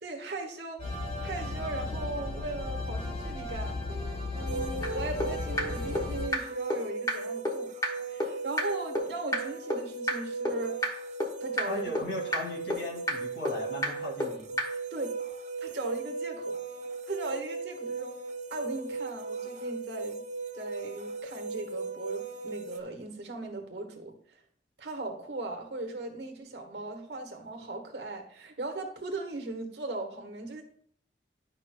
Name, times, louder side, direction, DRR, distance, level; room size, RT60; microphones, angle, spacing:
voice 1, 0.0-0.8 1.2-3.8 4.3-7.7 8.1-10.9 11.4-11.9 14.9-15.2 15.6-16.6 17.1-18.2 18.5-20.2 20.5-24.4 24.8-30.6, right 2 dB, 65° right, 3 dB, 1.4 m, -38 dB
sound 1, 0.8-6.3, left 2 dB, 35° left, 1.8 m, -35 dB
sound 2, 4.5-22.8, right 4 dB, 40° right, 0.6 m, -37 dB
sound 3, 4.8-4.9 5.2-5.3 5.6-5.7 5.9-6.0 6.3-6.4 6.7-6.8 7.1-7.2 7.4-7.5 7.8-7.9 8.2-8.3 8.6-8.7 8.9-9.0 9.3-9.4 9.7-9.8 10.1-10.2 10.4-10.5 10.8-10.9 11.2-11.3 11.6-11.7 11.9-12.0 12.3-12.4 12.7-12.8 13.1-13.2 13.4-13.5 13.8-13.9 14.2-14.3 14.6-14.7, left 1 dB, 20° left, 1.3 m, -27 dB
voice 2, 11.7-14.5, left 1 dB, 80° left, -1 dB, 2.3 m, -37 dB
11.0 x 5.6 x 2.2 m, 0.63 s
head